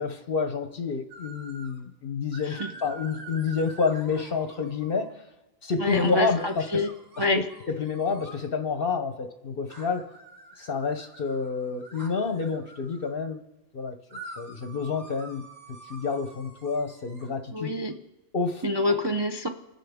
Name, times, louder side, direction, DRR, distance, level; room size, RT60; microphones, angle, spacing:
voice 1, 0.0-5.2 5.6-6.8 7.3-10.1 10.6-13.4 13.7-15.4 15.8-17.8 18.3-18.6, left 5 dB, 50° left, 8 dB, 0.8 m, -29 dB
sound 1, 1.1-1.8 2.3-5.1 5.8-8.5 9.7-13.1 14.1-17.3, right 2 dB, 85° right, 3.2 m, -47 dB
voice 2, 5.8-6.9 7.2-7.4 17.5-18.0 18.6-19.5, left 1 dB, 35° right, 5 dB, 0.4 m, -27 dB
29.5 x 10.5 x 3.5 m, 1.1 s
omnidirectional pair, 1.5 m